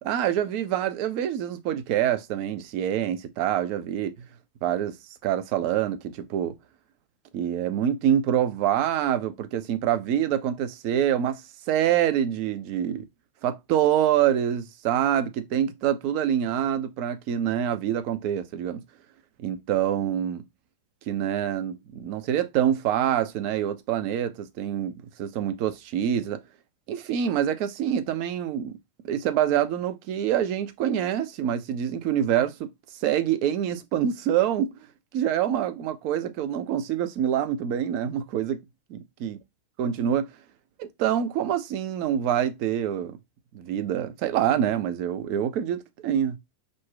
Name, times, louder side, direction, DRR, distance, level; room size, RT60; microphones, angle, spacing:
voice 1, 0.0-4.2 4.6-5.0 5.2-6.6 7.3-11.4 11.7-13.1 13.4-18.8 19.4-20.4 21.1-26.4 26.9-28.8 29.0-32.7 33.0-34.7 35.1-38.6 38.9-39.4 39.8-40.3 40.8-43.2 43.5-46.4, right 10 dB, 45° right, 0.5 m, -26 dB
2.5 x 2.1 x 3.6 m
figure-of-eight pair, 90°, 0 cm